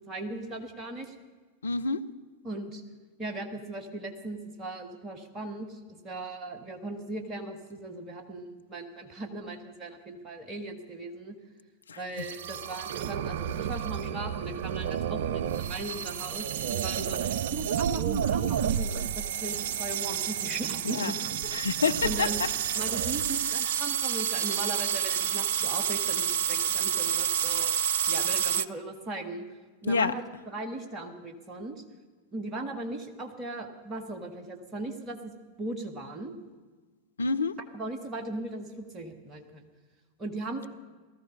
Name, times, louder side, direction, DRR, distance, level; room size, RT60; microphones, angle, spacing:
voice 1, 0.1-1.1 2.4-2.8 3.2-11.4 12.0-21.1 21.4-21.6 22.0-22.4 22.8-27.7 28.1-29.5 29.8-31.8 32.3-35.3 35.6-36.3 37.7-39.7 40.2-40.7, right 2 dB, 25° right, 4 dB, 1.7 m, -38 dB
voice 2, 1.6-2.0 11.9-12.3 20.8-21.2 21.5-22.5 29.9-30.1 37.2-37.5, left 4 dB, 70° left, 10 dB, 0.6 m, -28 dB
sound 1, 12.2-28.7, right 9 dB, 55° right, 0.4 m, -30 dB
18.5 x 13.5 x 5.5 m, 1.4 s
figure-of-eight pair, 90°, 0 cm